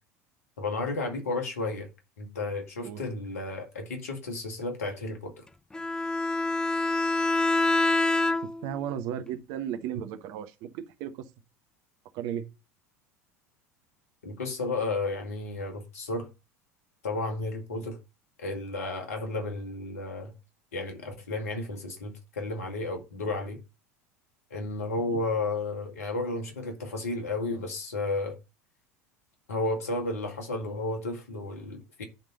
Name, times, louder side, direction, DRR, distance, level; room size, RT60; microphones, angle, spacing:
voice 1, 0.6-1.9 2.2-5.4 14.2-16.3 17.0-18.0 18.4-20.3 20.7-23.6 24.5-28.4 29.5-32.0, left 2 dB, 75° left, 2.0 m, -32 dB
Bowed string instrument, 5.7-8.7, left 2 dB, 10° left, 0.5 m, -26 dB
voice 2, 8.4-11.1 12.1-12.4 25.1-25.2, right 9 dB, 55° right, 1.1 m, -35 dB
10.5 x 3.7 x 5.4 m
figure-of-eight pair, 75°, 8 cm